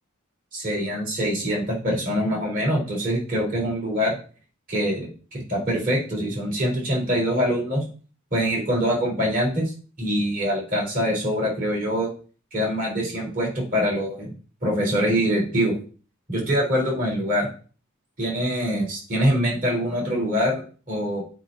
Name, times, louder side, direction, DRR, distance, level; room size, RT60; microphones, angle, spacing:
voice 1, 0.5-4.2 4.7-7.8 8.3-9.7 10.0-12.1 12.5-14.3 14.6-15.7 16.3-17.5 18.2-21.2, equal, 40° right, -2 dB, 3.9 m, -24 dB
7.8 x 2.7 x 5.7 m, 0.38 s
head